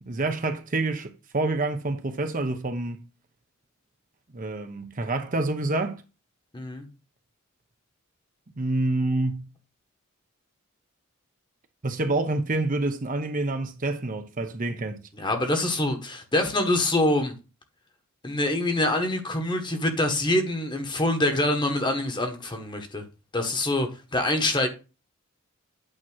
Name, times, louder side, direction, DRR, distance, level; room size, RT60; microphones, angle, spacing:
voice 1, 0.0-3.0 4.3-6.0 8.6-9.5 11.8-15.0, right 2 dB, 40° right, 0.8 m, -27 dB
voice 2, 6.5-6.9 15.1-17.3 18.2-23.0 23.3-24.7, left 1 dB, 20° left, 1.2 m, -25 dB
8.7 x 2.9 x 6.1 m
head